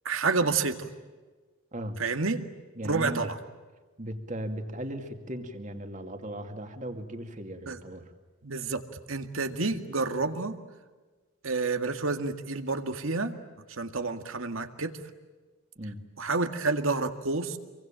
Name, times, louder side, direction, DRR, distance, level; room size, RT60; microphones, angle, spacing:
voice 1, 0.1-0.9 2.0-2.4 2.8-3.4 7.7-7.8 8.4-8.8 9.1-10.6 11.4-13.3 13.7-14.9 16.2-17.6, right 3 dB, 80° right, 7 dB, 2.0 m, -29 dB
voice 2, 1.7-2.0 2.7-3.3 4.0-8.1 15.8-16.0, right 1 dB, 35° right, 6 dB, 2.5 m, -37 dB
27.0 x 24.0 x 9.0 m, 1.3 s
head